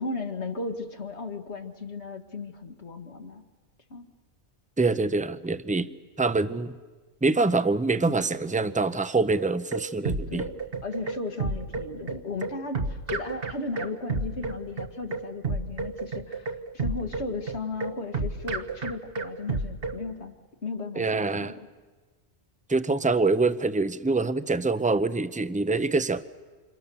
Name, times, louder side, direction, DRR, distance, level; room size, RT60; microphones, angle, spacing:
voice 1, 0.0-3.4 3.9-4.0 10.3-10.5 10.8-20.4 20.6-21.6, left 3 dB, 75° left, 4 dB, 2.2 m, -35 dB
voice 2, 4.8-5.9 6.2-6.7 7.2-10.5 20.9-21.5 22.7-26.3, right 3 dB, 10° right, 13 dB, 0.6 m, -25 dB
sound 1, 9.4-20.0, right 3 dB, 55° right, 1.6 m, -31 dB
28.5 x 27.0 x 7.0 m, 1.3 s
omnidirectional pair, 1.2 m